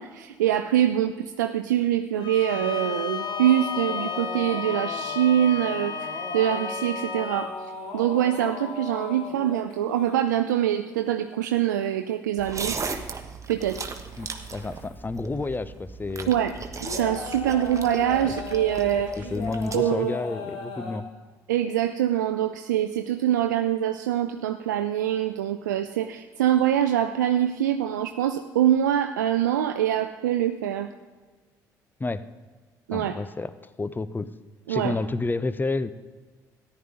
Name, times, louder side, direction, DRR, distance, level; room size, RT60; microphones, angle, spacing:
voice 1, 0.0-7.6 7.9-12.8 13.5-13.9 16.3-16.6 16.8-19.2 19.7-20.1 21.5-30.9 32.9-33.2 34.7-34.9, right 11 dB, 90° right, 7 dB, 0.4 m, -24 dB
sound 1, 2.1-10.3 12.4-13.2 13.5-14.9 15.3-15.4 16.8-21.0, left 4 dB, 75° left, 1.6 m, -37 dB
Bowed string instrument, 2.2-7.5, left 6 dB, 50° left, 1.0 m, -33 dB
sound 2, 12.4-19.8, right 5 dB, 35° right, 1.2 m, -37 dB
voice 2, 14.2-16.3 18.2-18.3 19.2-21.0 32.0-32.2 32.9-33.5 33.8-34.3 34.7-35.9, left 3 dB, 20° left, 15 dB, 0.7 m, -30 dB
13.5 x 10.5 x 3.8 m, 1.4 s
hypercardioid pair, 50°, 10 cm